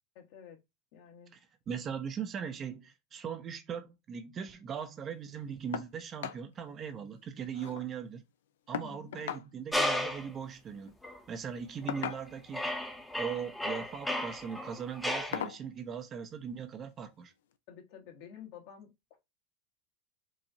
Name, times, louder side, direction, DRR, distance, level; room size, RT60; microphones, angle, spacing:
voice 1, 0.1-0.6 0.9-1.3 8.8-9.1 17.7-19.2, left 8 dB, 60° left, 1.3 m, -50 dB
voice 2, 1.7-8.2 8.7-10.9 11.3-12.7 13.1-17.3, right 7 dB, 35° right, 0.7 m, -39 dB
sound 1, 5.7-5.9 6.2-6.4 6.8-6.9 7.2-7.9 8.7-9.5 10.7-10.9 11.9-12.5 13.6-13.9 14.4-14.5 15.3-15.6 16.9-17.0 17.5-17.6, left 9 dB, 80° left, 0.4 m, -39 dB
sound 2, 9.7-10.3 11.0-11.2 11.8-12.2 12.5-15.4, left 1 dB, 5° left, 0.8 m, -34 dB
4.7 x 2.6 x 2.7 m
hypercardioid pair, 95°, 0 cm